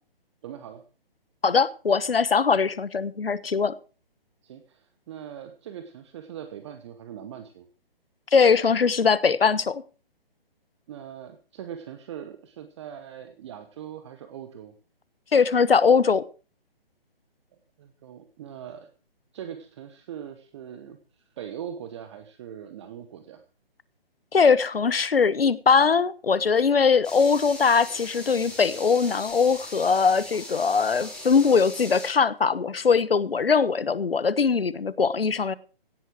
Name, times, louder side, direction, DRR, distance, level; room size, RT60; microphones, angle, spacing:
voice 1, 0.4-0.8 4.4-7.7 10.9-14.8 17.8-18.9 19.3-23.4, right 9 dB, 30° right, 1.1 m, -41 dB
voice 2, 1.4-3.7 8.3-9.8 15.3-16.2 24.3-35.5, left 5 dB, 70° left, 1.2 m, -21 dB
sound 1, 27.0-32.1, left 1 dB, 5° left, 3.9 m, -40 dB
17.0 x 8.0 x 6.1 m
figure-of-eight pair, 135°, 30 cm